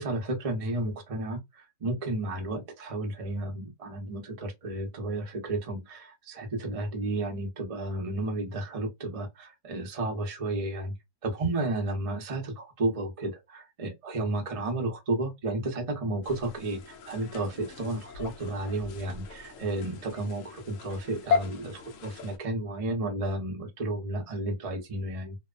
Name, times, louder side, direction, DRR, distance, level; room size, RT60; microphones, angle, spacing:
voice 1, 0.0-10.9 11.2-25.4, right 2 dB, 45° right, 0.4 m, -32 dB
sound 1, 16.2-22.4, left 6 dB, 70° left, 0.7 m, -36 dB
2.8 x 2.1 x 2.4 m
omnidirectional pair, 1.8 m